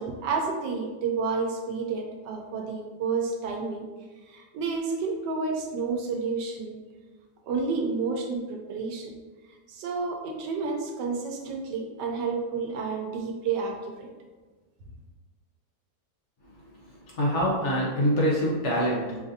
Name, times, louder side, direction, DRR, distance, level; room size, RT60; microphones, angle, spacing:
voice 1, 0.0-3.9 4.3-6.8 7.5-9.1 9.7-14.1, right 4 dB, 85° right, 1 dB, 1.3 m, -30 dB
voice 2, 17.1-19.2, equal, 60° left, -4 dB, 0.8 m, -24 dB
4.8 x 2.5 x 2.6 m, 1.3 s
omnidirectional pair, 1.8 m